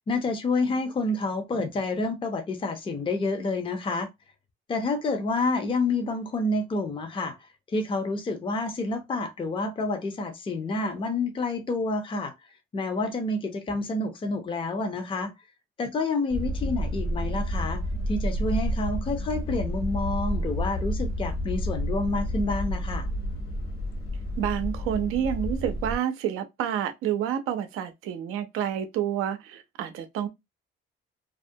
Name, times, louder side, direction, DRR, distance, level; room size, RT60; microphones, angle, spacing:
voice 1, 0.1-4.1 4.7-12.3 12.7-15.3 15.8-17.8 18.1-23.1, left 2 dB, 25° left, 0.5 m, -28 dB
sound 1, 16.3-26.0, equal, 45° left, 0.9 m, -30 dB
voice 2, 24.4-30.3, right 10 dB, 85° right, 0.5 m, -29 dB
2.4 x 2.1 x 2.6 m
cardioid pair, 115°, 21 cm